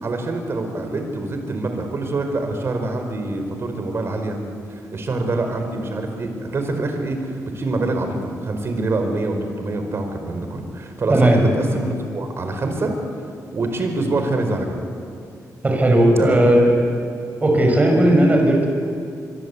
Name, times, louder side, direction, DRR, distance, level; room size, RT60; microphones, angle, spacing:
voice 1, 0.0-4.4 4.7-12.9 13.5-14.8 16.1-16.5, right 2 dB, 45° right, 5 dB, 4.6 m, -25 dB
voice 2, 11.1-11.4 15.6-16.7 17.4-18.7, right 1 dB, 25° right, 2 dB, 6.1 m, -15 dB
25.5 x 22.5 x 8.4 m, 2.5 s
cardioid pair, 110°, 6 cm